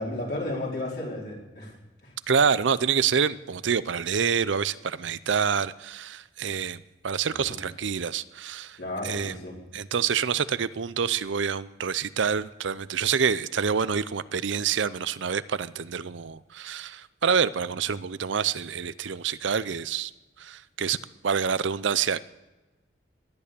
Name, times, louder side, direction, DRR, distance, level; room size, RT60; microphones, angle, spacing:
voice 1, 0.0-1.7 2.0-2.1 7.3-7.6 8.8-9.6, left 1 dB, 55° left, -2 dB, 4.5 m, -33 dB
voice 2, 2.3-8.8 9.0-9.4 9.7-20.1 20.4-21.0 21.2-22.3, right 6 dB, 80° right, 16 dB, 0.6 m, -27 dB
19.0 x 11.0 x 6.8 m, 1.1 s
head